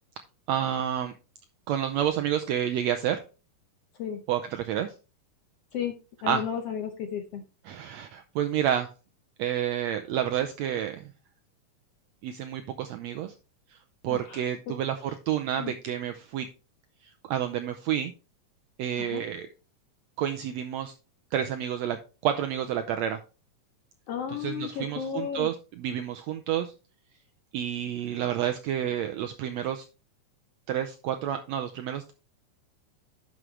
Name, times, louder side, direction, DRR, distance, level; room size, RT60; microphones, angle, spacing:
voice 1, 0.5-1.1 1.7-3.2 4.3-4.9 6.3-6.4 7.7-8.9 9.4-11.1 12.2-13.3 13.7-13.8 14.0-16.5 17.3-18.1 18.8-19.5 20.2-20.9 21.3-22.0 22.2-23.2 24.3-26.7 27.5-29.8 30.7-32.1, right 10 dB, 90° right, 7 dB, 1.5 m, -29 dB
voice 2, 6.2-7.4 14.1-14.4 15.6-15.7 19.0-19.2 24.1-25.5, left 8 dB, 70° left, 5 dB, 1.5 m, -33 dB
11.0 x 6.3 x 3.2 m, 0.32 s
omnidirectional pair, 3.8 m